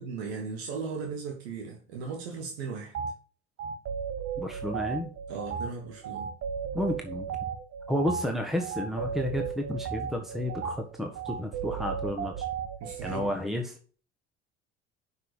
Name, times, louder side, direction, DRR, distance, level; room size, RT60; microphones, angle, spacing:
voice 1, 0.0-2.9 5.3-6.3 12.8-13.3, right 5 dB, 85° right, 1.5 m, -37 dB
sound 1, 2.9-3.1 3.6-13.3, right 7 dB, 50° right, 1.3 m, -35 dB
voice 2, 4.4-5.1 6.7-7.3 7.9-12.5 13.0-13.8, left 1 dB, ahead, 1.4 m, -31 dB
5.9 x 5.6 x 6.6 m
hypercardioid pair, 75°, 31 cm